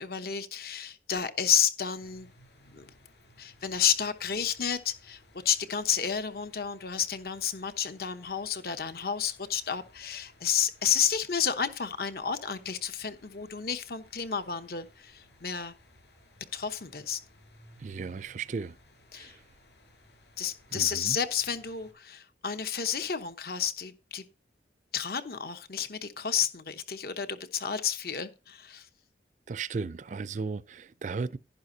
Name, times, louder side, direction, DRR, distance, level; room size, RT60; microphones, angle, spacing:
voice 1, 0.0-2.3 2.7-2.9 3.4-5.2 5.4-15.7 16.5-17.2 19.1-19.4 20.4-24.2 24.9-28.9, left 8 dB, 55° left, 1.0 m, -31 dB
sound 1, 2.0-21.9, left 1 dB, 75° left, 5.4 m, -59 dB
voice 2, 17.8-18.8 19.1-19.4 20.7-21.2 29.5-31.4, right 4 dB, 45° right, 0.4 m, -35 dB
11.0 x 11.0 x 2.7 m
head